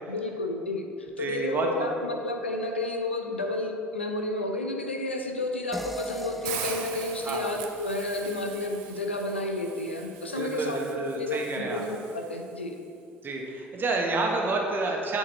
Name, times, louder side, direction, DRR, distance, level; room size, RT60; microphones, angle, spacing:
voice 1, 0.1-12.8, left 2 dB, 85° left, 3 dB, 0.6 m, -31 dB
voice 2, 1.2-1.9 7.2-7.5 10.3-11.8 13.2-15.2, right 3 dB, 35° right, 0 dB, 1.3 m, -29 dB
sound 1, 5.7-8.8, right 1 dB, ahead, 0.3 m, -40 dB
Hiss, 6.4-12.5, right 8 dB, 65° right, 0.6 m, -41 dB
8.8 x 4.7 x 4.4 m, 2.4 s
figure-of-eight pair, 55°, 6 cm